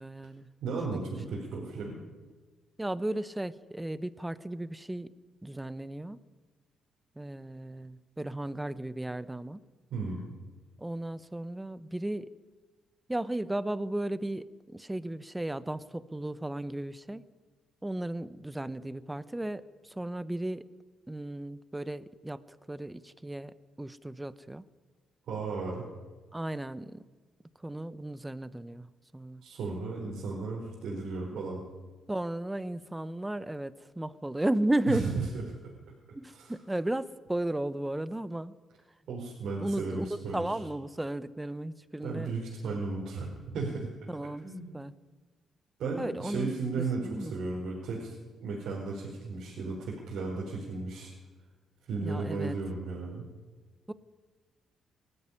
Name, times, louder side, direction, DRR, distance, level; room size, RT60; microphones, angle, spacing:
voice 1, 0.0-0.5 0.9-1.0 2.8-5.1 5.4-6.2 7.2-9.6 10.8-12.3 13.1-17.2 17.8-20.6 21.1-22.4 22.7-24.6 26.3-27.0 27.6-29.4 31.3-31.4 32.1-35.0 36.2-38.5 39.6-42.3 42.7-42.8 44.1-44.4 44.7-44.9 46.0-46.5 46.8-47.3 52.0-52.6 53.9-54.0, right 1 dB, 10° right, 15 dB, 0.9 m, -35 dB
voice 2, 0.6-2.0 9.9-10.2 25.3-25.8 29.4-31.6 34.9-35.4 36.3-36.5 39.1-40.6 42.0-43.9 44.4-44.7 45.8-48.1 48.4-51.1 51.9-53.2, right 3 dB, 75° right, -4 dB, 4.6 m, -35 dB
19.5 x 13.5 x 9.9 m, 1.3 s
cardioid pair, 90°, 0 cm